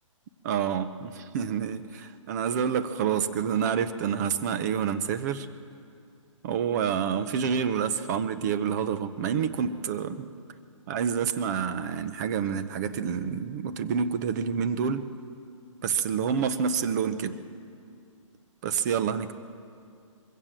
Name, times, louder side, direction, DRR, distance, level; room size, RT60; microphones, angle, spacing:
voice 1, 0.4-5.5 6.4-10.3 10.9-15.0 15.8-17.4 18.6-19.4, right 7 dB, 30° right, 11 dB, 0.8 m, -28 dB
21.5 x 16.0 x 7.5 m, 2.4 s
hypercardioid pair, 155°, 17 cm